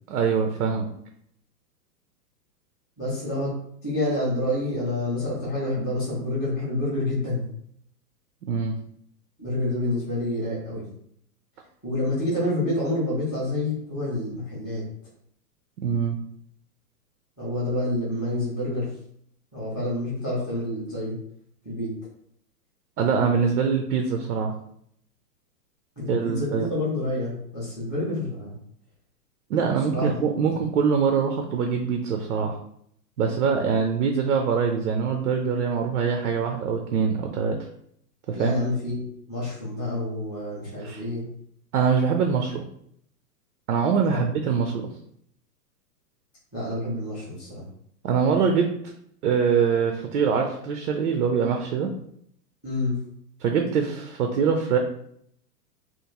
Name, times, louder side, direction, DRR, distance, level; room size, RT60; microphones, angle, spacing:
voice 1, 0.1-0.9 8.5-8.8 15.8-16.2 23.0-24.5 26.1-26.7 29.5-32.6 33.2-37.6 38.3-38.5 40.8-41.0 41.7-42.6 43.7-44.9 48.0-48.7 49.2-51.9 53.4-54.8, right 6 dB, 65° right, 4 dB, 0.6 m, -23 dB
voice 2, 3.0-3.5 3.8-7.4 9.4-10.8 11.8-14.8 17.4-18.9 19.5-21.1 21.6-21.9 26.0-28.5 29.9-30.5 38.3-41.2 44.1-44.2 46.5-47.6 52.6-53.0, left 1 dB, 5° left, -13 dB, 0.5 m, -28 dB
3.0 x 2.5 x 3.5 m, 0.69 s
hypercardioid pair, 170°, 49 cm